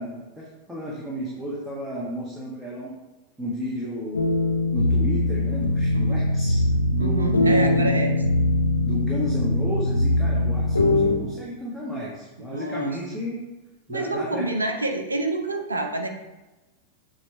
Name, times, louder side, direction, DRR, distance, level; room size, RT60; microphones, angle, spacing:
voice 1, 0.0-2.9 3.4-4.2 4.7-6.6 6.9-7.9 8.8-13.4 13.9-14.4, equal, 5° right, -5 dB, 1.4 m, -32 dB
sound 1, 4.1-11.2, left 2 dB, 80° left, 0.6 m, -22 dB
voice 2, 7.0-8.1 12.4-13.2 13.9-16.1, right 2 dB, 75° right, 4 dB, 0.6 m, -28 dB
7.9 x 3.2 x 5.5 m, 1.1 s
figure-of-eight pair, 90°, 0 cm